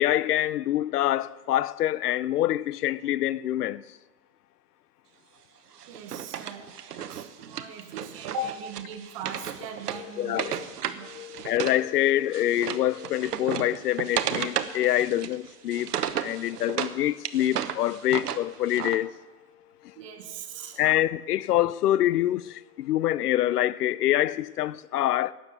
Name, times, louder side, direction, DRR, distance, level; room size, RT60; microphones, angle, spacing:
voice 1, 0.0-3.8 10.0-10.7 11.0-15.9 16.2-19.1 19.8-19.9 20.8-25.3, left 13 dB, 75° left, 0.5 m, -26 dB
Wood, 5.8-11.8 12.1-16.9 17.2-19.0, right 9 dB, 80° right, 1.1 m, -34 dB
voice 2, 5.9-10.6 10.9-11.2 19.9-20.8, right 6 dB, 20° right, 0.8 m, -40 dB
12.0 x 7.6 x 9.1 m
hypercardioid pair, 165°, 47 cm